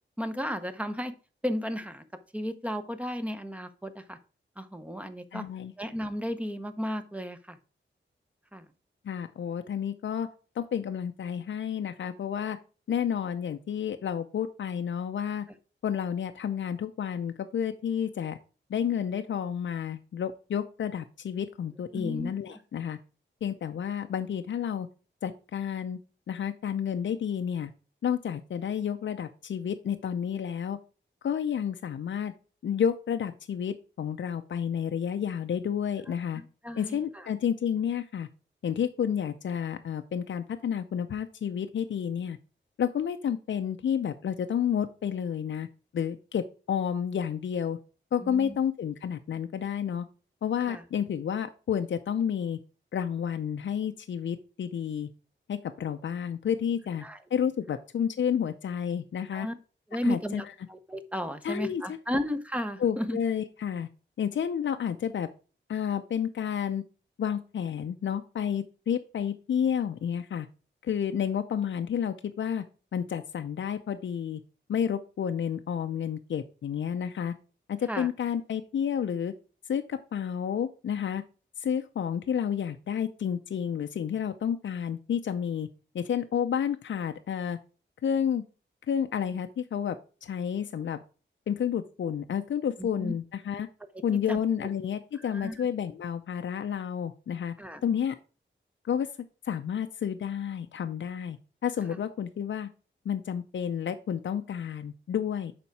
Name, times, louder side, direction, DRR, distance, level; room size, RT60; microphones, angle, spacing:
voice 1, 0.2-1.1 1.4-2.0 2.3-4.2 4.6-5.4 5.8-7.6 8.5-8.6 21.9-22.3 36.4-37.0 48.2-48.5 50.7-50.8 57.0-57.2 59.3-59.5 59.9-63.2 77.9-78.1 93.0-93.1 94.3-94.4 95.3-95.6 97.6-97.8, equal, 5° right, 10 dB, 0.8 m, -33 dB
voice 2, 5.3-5.7 9.0-10.3 10.6-12.6 12.9-15.5 15.8-18.4 18.7-23.0 23.4-24.9 25.2-26.0 26.3-27.7 28.0-30.8 31.2-32.3 32.6-36.4 36.8-38.3 38.6-42.4 42.8-45.7 45.9-47.8 48.1-50.1 50.4-52.6 52.9-55.1 55.5-57.0 57.3-59.5 60.0-60.5 61.4-62.3 62.8-63.9 64.2-65.3 65.7-66.8 67.2-70.5 70.8-72.6 72.9-74.4 74.7-77.3 77.7-79.3 79.7-81.2 81.6-85.7 85.9-87.6 88.0-88.4 88.9-90.0 90.2-91.0 91.5-93.7 94.0-97.5 97.8-98.1 98.8-99.1 99.4-102.7 103.1-105.5, left 8 dB, 70° left, 7 dB, 0.6 m, -30 dB
7.0 x 5.2 x 4.6 m, 0.36 s
wide cardioid pair, 125°, 20 cm